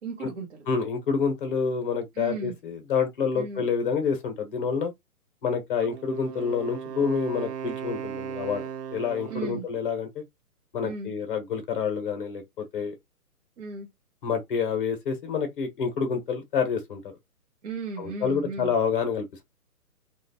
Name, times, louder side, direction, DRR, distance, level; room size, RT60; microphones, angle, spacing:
voice 1, 0.0-0.7 2.1-2.5 3.3-3.6 9.3-9.7 10.8-11.1 13.6-13.9 17.6-18.7, right 4 dB, 50° right, 1.0 m, -35 dB
voice 2, 0.7-4.9 5.4-8.6 8.9-10.2 10.7-12.9 14.2-17.0 18.0-19.4, left 6 dB, 35° left, 0.9 m, -28 dB
Wind instrument woodwind instrument, 5.8-9.7, right 8 dB, 85° right, 0.7 m, -37 dB
3.0 x 2.4 x 2.7 m
hypercardioid pair, 145°, 46 cm